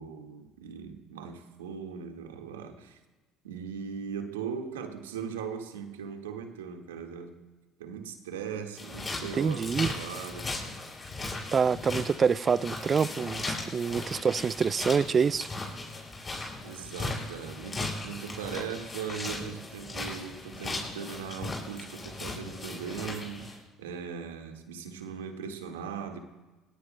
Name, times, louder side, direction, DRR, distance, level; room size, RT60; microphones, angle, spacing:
voice 1, 0.0-3.0 3.4-7.4 7.8-10.6 16.6-26.2, right 7 dB, 85° right, 1.6 m, -39 dB
sound 1, 8.8-23.6, left 2 dB, 30° left, 6.7 m, -37 dB
voice 2, 9.4-9.9 11.5-15.5, right 6 dB, 40° right, 0.4 m, -26 dB
30.0 x 18.0 x 2.2 m
hypercardioid pair, 65°, 0 cm